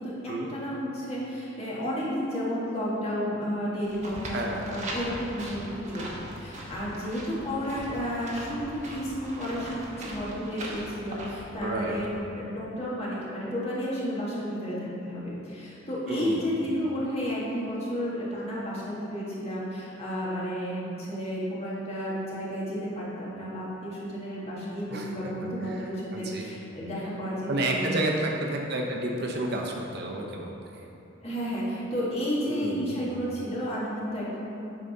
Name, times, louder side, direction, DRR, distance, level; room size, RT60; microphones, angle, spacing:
voice 1, 0.0-6.0 6.3-12.1 12.3-28.0 31.2-34.5, equal, 30° left, -7 dB, 1.8 m, -32 dB
sound 1, 3.8-12.2, right 1 dB, 35° right, 1.1 m, -40 dB
voice 2, 4.3-4.8 11.6-11.9 16.1-16.4 24.9-25.7 26.1-26.5 27.5-30.8 32.5-33.0, right 2 dB, 55° right, 0 dB, 0.8 m, -31 dB
8.7 x 3.9 x 5.7 m, 2.9 s
head